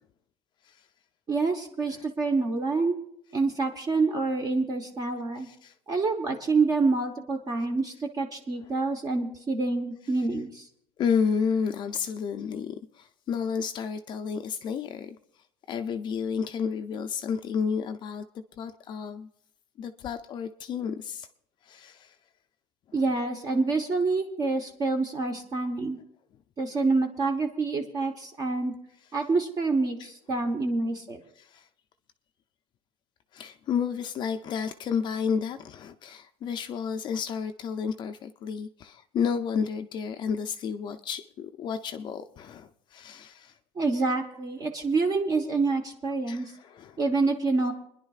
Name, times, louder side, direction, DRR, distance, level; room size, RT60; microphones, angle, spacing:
voice 1, 1.3-3.0 3.3-5.5 5.9-10.6 22.9-26.0 26.6-28.7 29.1-31.2 43.8-46.5 47.0-47.7, right 3 dB, 30° right, 4 dB, 1.0 m, -27 dB
voice 2, 5.4-5.7 8.6-8.7 11.0-15.2 15.7-18.2 18.6-19.3 19.8-21.3 21.6-22.2 31.4-31.7 33.3-43.6 46.3-47.0, left 6 dB, 35° left, 7 dB, 0.5 m, -31 dB
30.0 x 10.5 x 2.4 m, 0.73 s
cardioid pair, 150°, 13 cm